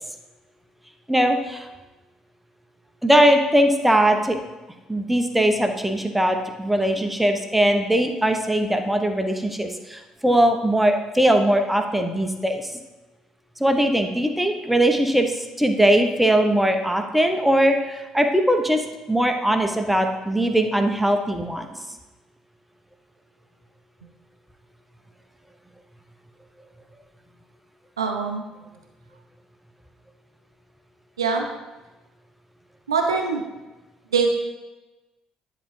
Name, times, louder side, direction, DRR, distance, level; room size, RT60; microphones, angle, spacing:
voice 1, 1.1-1.7 3.0-4.4 4.9-12.6 13.6-18.8 19.1-21.7, right 1 dB, 5° right, 5 dB, 0.8 m, -20 dB
voice 2, 28.0-28.4 31.2-31.5 32.9-33.4 34.1-34.3, right 4 dB, 80° right, 3 dB, 0.5 m, -22 dB
9.9 x 3.9 x 3.2 m, 1.1 s
figure-of-eight pair, 50°, 3 cm